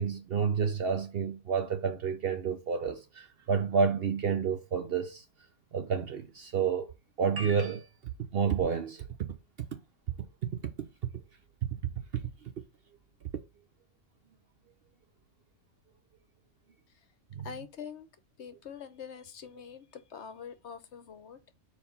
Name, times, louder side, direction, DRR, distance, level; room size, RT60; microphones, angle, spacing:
voice 1, 0.0-5.2 5.7-6.9 7.2-7.9 8.2-9.4 9.7-9.8 10.2-10.9 11.6-12.2 17.4-17.5, right 6 dB, 55° right, 0.7 m, -30 dB
voice 2, 17.4-18.1 18.4-21.4, left 7 dB, 60° left, 1.0 m, -44 dB
4.5 x 4.3 x 5.2 m
omnidirectional pair, 1.4 m